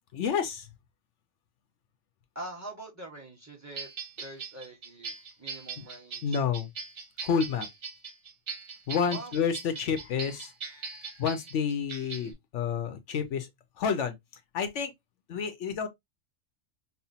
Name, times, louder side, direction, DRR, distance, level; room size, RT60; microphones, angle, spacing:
voice 1, 0.1-0.7 5.8-5.9 6.2-6.7 7.2-7.7 8.9-10.5 10.9-13.5 13.8-14.2 14.5-14.9 15.3-15.9, left 6 dB, 75° left, 1.0 m, -29 dB
voice 2, 2.3-3.9 4.2-6.4 9.1-9.4, right 2 dB, 15° right, 1.2 m, -44 dB
sound 1, 3.7-12.3, right 5 dB, 70° right, 1.4 m, -40 dB
5.4 x 2.1 x 2.7 m
omnidirectional pair, 1.3 m